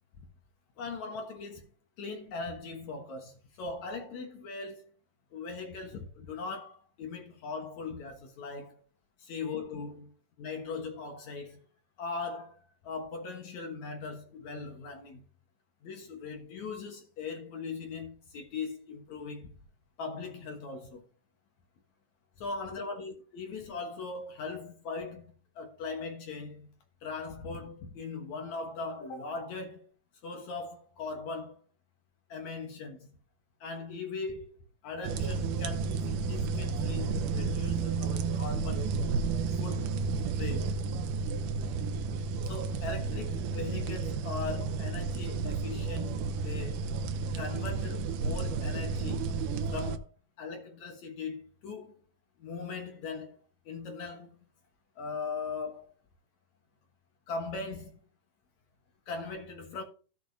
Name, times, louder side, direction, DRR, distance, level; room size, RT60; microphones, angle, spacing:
voice 1, 0.8-1.7 2.0-4.9 5.3-8.8 9.2-11.7 12.0-15.3 15.8-19.6 20.0-21.0 22.4-26.7 27.0-29.9 30.2-31.6 32.3-33.1 33.6-34.6 34.8-38.9 39.6-40.0 40.4-40.8 41.1-41.2 42.4-46.9 47.3-49.3 49.7-50.1 50.4-52.0 52.4-54.5 55.0-55.9 57.3-58.0 59.1-59.8, left 4 dB, 60° left, 2.4 m, -40 dB
sound 1, 35.0-50.0, right 4 dB, 75° right, 2.3 m, -32 dB
16.0 x 6.9 x 2.7 m
omnidirectional pair, 4.0 m